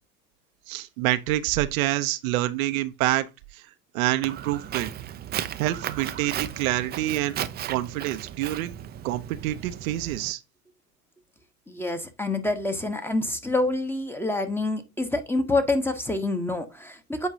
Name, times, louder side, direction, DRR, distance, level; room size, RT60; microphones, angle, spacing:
voice 1, 0.7-3.7 3.9-4.9 5.6-7.4 7.7-8.7 9.0-10.4, right 15 dB, 60° right, 0.7 m, -27 dB
Walk footsteps, 4.2-10.3, right 10 dB, 20° right, 0.5 m, -35 dB
voice 2, 11.7-17.3, left 2 dB, 5° left, 1.0 m, -27 dB
8.2 x 4.7 x 2.7 m
hypercardioid pair, 90°, 47 cm